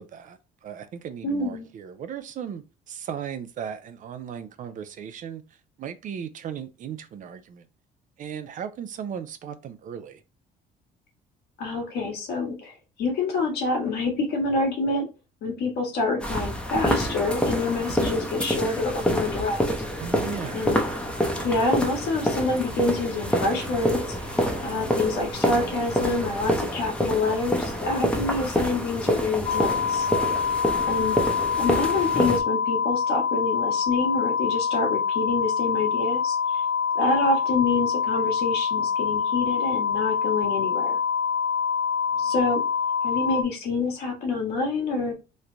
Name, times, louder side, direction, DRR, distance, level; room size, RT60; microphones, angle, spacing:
voice 1, 0.0-5.4 5.8-7.6 8.2-10.2 20.0-20.8 30.1-30.4 42.1-42.3, right 8 dB, 50° right, 0.5 m, -37 dB
voice 2, 1.2-1.7 11.6-12.7 13.0-15.1 15.4-19.6 20.5-20.8 21.4-24.0 24.6-30.1 30.9-31.2 31.6-36.6 36.9-41.0 42.2-42.6 43.0-45.1, left 3 dB, 75° left, 1.4 m, -27 dB
sound 1, 16.2-32.4, equal, 5° left, 0.7 m, -27 dB
sound 2, 20.1-26.6, right 2 dB, 25° right, 0.8 m, -44 dB
sound 3, 29.4-43.4, left 6 dB, 40° left, 0.5 m, -25 dB
3.2 x 2.2 x 3.8 m
cardioid pair, 110°, 17 cm